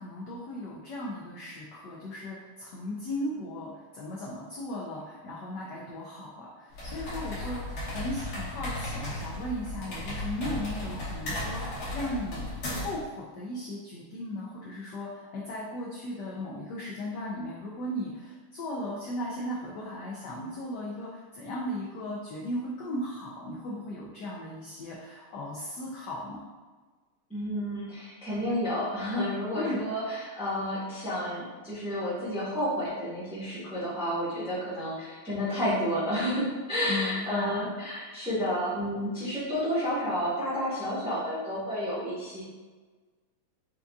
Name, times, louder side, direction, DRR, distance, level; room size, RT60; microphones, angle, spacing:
voice 1, 0.0-26.5 29.5-29.8 36.9-37.7, left 1 dB, 80° left, -4 dB, 0.9 m, -36 dB
sound 1, 6.7-13.0, left 1 dB, 55° left, 1.3 m, -35 dB
voice 2, 27.3-42.4, equal, 5° right, -11 dB, 0.7 m, -31 dB
4.6 x 2.6 x 2.3 m, 1.4 s
omnidirectional pair, 2.4 m